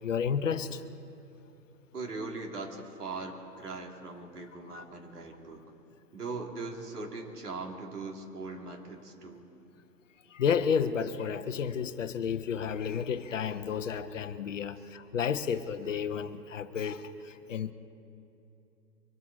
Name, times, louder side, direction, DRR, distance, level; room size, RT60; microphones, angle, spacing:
voice 1, 0.0-0.8 4.7-4.8 10.3-17.7, left 7 dB, 50° left, 11 dB, 0.9 m, -31 dB
voice 2, 1.9-5.6 6.1-9.4, right 3 dB, 70° right, 1 dB, 2.9 m, -40 dB
24.0 x 13.0 x 4.2 m, 2.8 s
figure-of-eight pair, 125°, 49 cm